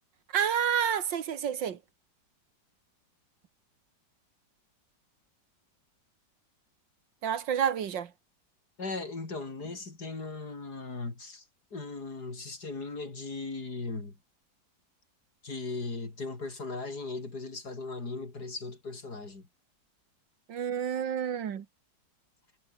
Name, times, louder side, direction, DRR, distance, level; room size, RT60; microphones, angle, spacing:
voice 1, 0.3-1.8 7.2-8.1 20.5-21.7, right 8 dB, 80° right, 2.1 m, -29 dB
voice 2, 8.8-11.4 11.7-14.2 15.4-19.4, left 3 dB, 60° left, 4.8 m, -38 dB
omnidirectional pair, 2.0 m